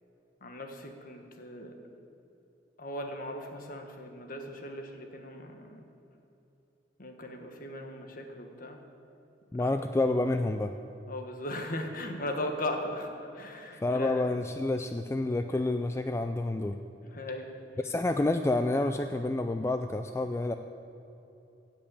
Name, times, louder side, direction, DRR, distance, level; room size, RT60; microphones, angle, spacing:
voice 1, 0.4-1.7 2.8-5.8 7.0-8.8 9.5-9.7 11.1-14.2 17.0-17.5, left 1 dB, 50° left, 4 dB, 1.3 m, -38 dB
voice 2, 9.5-10.7 13.8-16.8 17.8-20.5, left 2 dB, 15° left, 7 dB, 0.3 m, -29 dB
15.5 x 5.4 x 8.6 m, 3.0 s
head